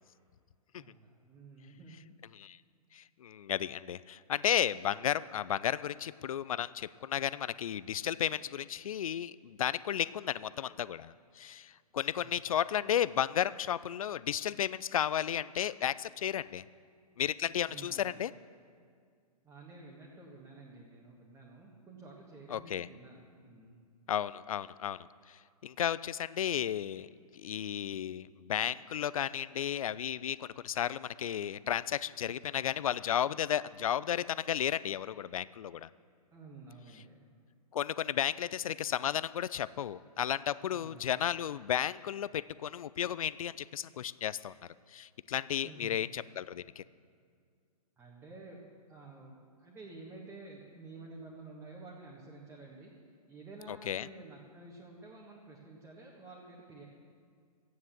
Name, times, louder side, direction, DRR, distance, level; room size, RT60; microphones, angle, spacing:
voice 1, 0.7-2.0 12.1-12.4 17.6-18.2 19.4-23.8 36.3-37.3 40.7-41.1 45.6-46.1 48.0-48.6 48.9-56.8, right 3 dB, 10° right, -3 dB, 1.5 m, -51 dB
voice 2, 2.9-16.6 17.2-18.3 22.5-22.9 24.1-25.1 25.6-27.1 27.3-35.9 37.7-44.5 44.9-46.8 53.7-54.1, left 10 dB, 60° left, 18 dB, 0.4 m, -33 dB
13.0 x 9.3 x 7.4 m, 2.2 s
figure-of-eight pair, 120°, 20 cm